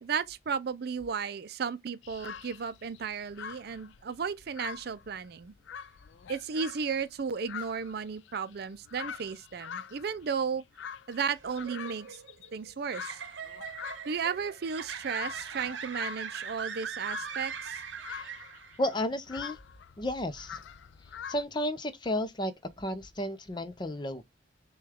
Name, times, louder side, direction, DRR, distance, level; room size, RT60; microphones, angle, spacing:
voice 1, 0.0-5.5 6.3-10.6 11.1-12.2 12.5-13.2 14.1-17.8, right 6 dB, 55° right, 0.4 m, -34 dB
sound 1, 2.0-21.4, left 7 dB, 70° left, 0.4 m, -45 dB
sound 2, 11.3-18.9, right 6 dB, 75° right, 0.8 m, -41 dB
voice 2, 18.8-19.6 20.0-20.6 21.3-24.2, left 1 dB, 25° left, 0.6 m, -33 dB
6.2 x 2.3 x 3.4 m
head